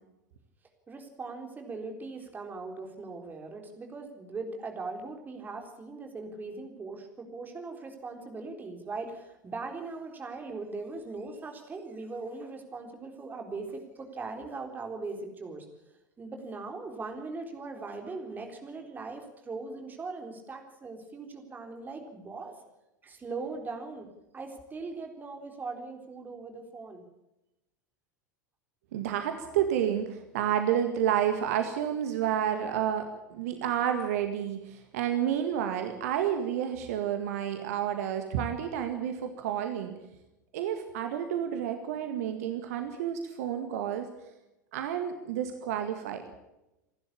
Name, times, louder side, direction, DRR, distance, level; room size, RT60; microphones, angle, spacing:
voice 1, 0.9-15.7 16.2-22.6 23.0-24.1 24.3-27.0, right 3 dB, 20° right, 4 dB, 4.0 m, -40 dB
voice 2, 28.9-40.0 40.5-44.1 44.7-46.2, right 9 dB, 55° right, 7 dB, 1.9 m, -30 dB
27.0 x 12.0 x 8.6 m, 0.94 s
figure-of-eight pair, 85°, 10 cm